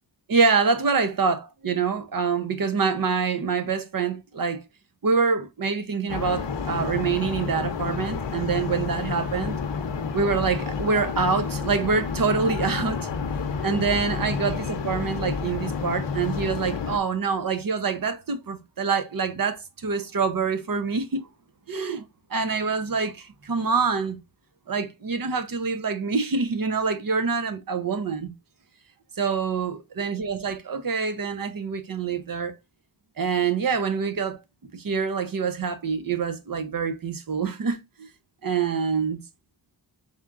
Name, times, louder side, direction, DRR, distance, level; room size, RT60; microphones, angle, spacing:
voice 1, 0.3-4.6 5.0-9.5 10.1-13.1 13.6-21.2 21.7-22.0 22.3-24.2 24.7-28.3 29.2-32.5 33.2-34.4 34.7-38.1 38.4-39.2, right 5 dB, 50° right, 0.7 m, -26 dB
sound 1, 6.1-17.0, left 5 dB, 75° left, 0.7 m, -30 dB
4.2 x 3.5 x 2.4 m
wide cardioid pair, 70°, 44 cm